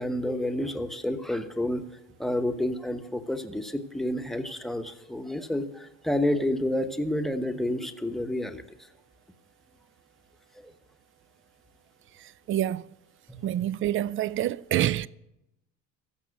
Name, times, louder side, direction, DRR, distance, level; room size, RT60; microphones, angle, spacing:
voice 1, 0.0-1.8 2.2-8.6 10.6-10.7 13.3-13.5, left 1 dB, ahead, 1.0 m, -29 dB
voice 2, 12.2-12.9 13.4-15.1, right 12 dB, 40° right, 0.4 m, -27 dB
15.0 x 5.9 x 8.1 m
supercardioid pair, 100°, 33 cm